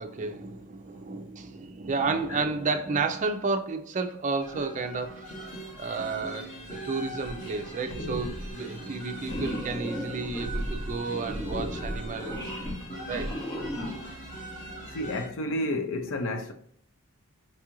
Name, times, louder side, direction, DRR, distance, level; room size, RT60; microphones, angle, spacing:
voice 1, 0.0-5.3 5.8-12.7 13.1-13.3, right 4 dB, 35° right, 0.4 m, -32 dB
sound 1, 4.4-15.3, right 1 dB, 35° left, 0.9 m, -41 dB
sound 2, 7.2-7.6 7.9-8.5 9.2-14.2, equal, 15° left, 0.6 m, -35 dB
voice 2, 14.9-16.5, left 1 dB, 60° left, 0.6 m, -30 dB
5.3 x 2.4 x 2.9 m
head